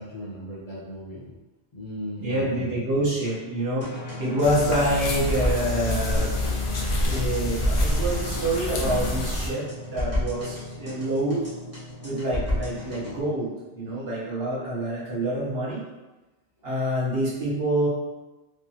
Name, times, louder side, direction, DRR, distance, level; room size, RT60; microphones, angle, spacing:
voice 1, 0.0-1.3 1.7-2.7, equal, 35° left, -5 dB, 0.7 m, -36 dB
voice 2, 2.2-3.9 4.2-6.3 7.0-11.4 12.0-15.8 16.6-17.9, right 1 dB, 55° right, -7 dB, 1.4 m, -26 dB
sound 1, 3.8-13.2, left 1 dB, 15° right, 1.3 m, -32 dB
sound 2, 4.4-9.5, left 1 dB, 55° left, 0.3 m, -27 dB
3.3 x 3.1 x 2.9 m, 1.1 s
omnidirectional pair, 1.2 m